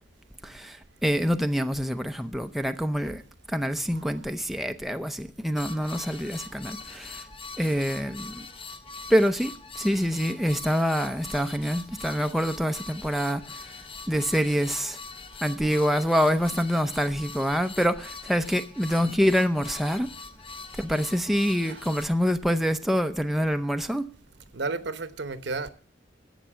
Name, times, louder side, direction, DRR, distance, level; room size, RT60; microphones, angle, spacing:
voice 1, 0.4-3.2 3.5-7.2 7.6-8.5 9.1-13.7 14.1-15.0 15.4-20.1 20.8-24.0, equal, ahead, 0.6 m, -26 dB
sound 1, 5.6-22.1, left 4 dB, 30° left, 0.9 m, -43 dB
voice 2, 24.5-25.7, right 3 dB, 70° right, 1.0 m, -33 dB
11.5 x 8.0 x 7.4 m
head